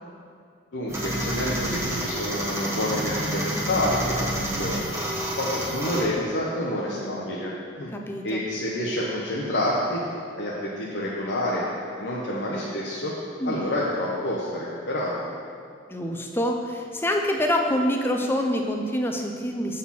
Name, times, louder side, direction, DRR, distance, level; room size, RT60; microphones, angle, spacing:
voice 1, 0.7-4.9 5.4-7.9 8.2-10.0 10.4-11.6 12.0-13.1 13.5-15.2, left 1 dB, 70° left, -6 dB, 0.9 m, -28 dB
sound 1, 0.9-6.0, right 1 dB, 15° right, 1.0 m, -29 dB
voice 2, 6.9-7.3 7.9-8.4 13.4-13.6 15.9-19.8, equal, 10° left, 2 dB, 0.5 m, -26 dB
7.7 x 4.2 x 5.7 m, 2.3 s
head